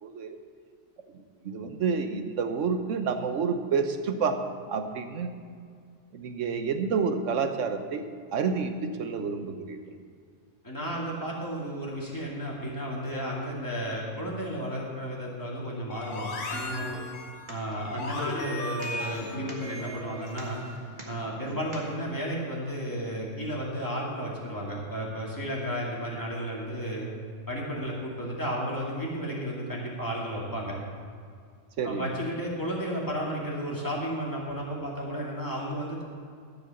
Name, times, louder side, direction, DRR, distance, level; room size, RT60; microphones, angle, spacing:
voice 1, 0.0-0.4 1.1-4.4 4.7-5.3 6.1-8.1 8.3-10.0 31.8-32.1, right 5 dB, 75° right, 7 dB, 1.2 m, -29 dB
voice 2, 10.6-17.0 17.5-20.6 21.1-27.1 27.5-30.8 31.8-36.0, equal, 15° left, -4 dB, 2.4 m, -33 dB
sound 1, 15.9-20.8, left 2 dB, 70° left, 1.6 m, -36 dB
sound 2, 17.0-22.0, right 1 dB, 40° right, 1.8 m, -47 dB
13.5 x 5.6 x 7.1 m, 2.2 s
omnidirectional pair, 1.3 m